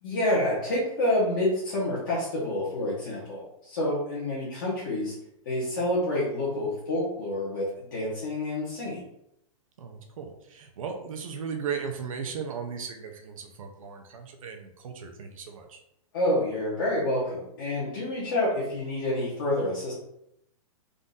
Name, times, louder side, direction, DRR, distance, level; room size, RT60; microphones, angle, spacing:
voice 1, 0.0-5.1 5.4-9.0 16.1-19.9, left 1 dB, 35° left, -8 dB, 1.2 m, -28 dB
voice 2, 9.8-15.8, right 6 dB, 70° right, 4 dB, 0.7 m, -36 dB
3.8 x 2.6 x 3.8 m, 0.78 s
hypercardioid pair, 180°, 18 cm